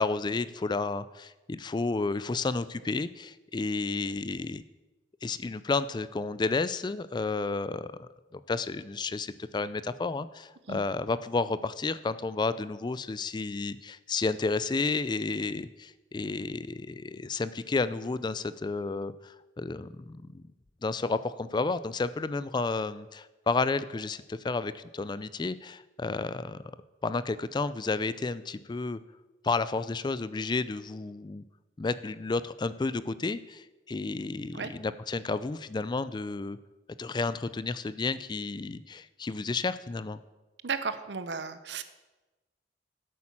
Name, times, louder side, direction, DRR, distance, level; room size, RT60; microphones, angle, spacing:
voice 1, 0.0-4.6 5.2-20.4 20.8-26.6 27.0-29.0 29.4-31.4 31.8-36.6 37.0-40.2, left 3 dB, 25° left, 15 dB, 0.4 m, -31 dB
voice 2, 40.6-41.8, right 5 dB, 75° right, 12 dB, 0.8 m, -34 dB
8.8 x 8.3 x 7.3 m, 1.1 s
head